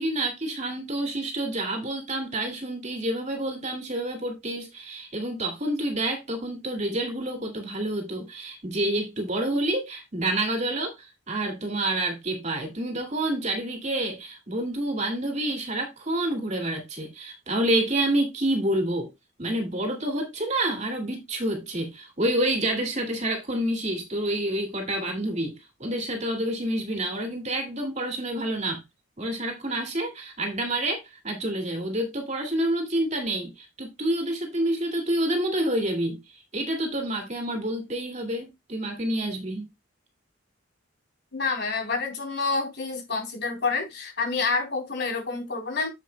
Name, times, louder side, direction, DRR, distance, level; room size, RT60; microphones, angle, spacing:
voice 1, 0.0-19.1 19.4-28.8 29.2-36.2 36.5-39.7, right 1 dB, 35° right, 2.5 m, -28 dB
voice 2, 41.3-45.9, left 4 dB, 55° left, 3.7 m, -28 dB
9.8 x 7.7 x 2.3 m
head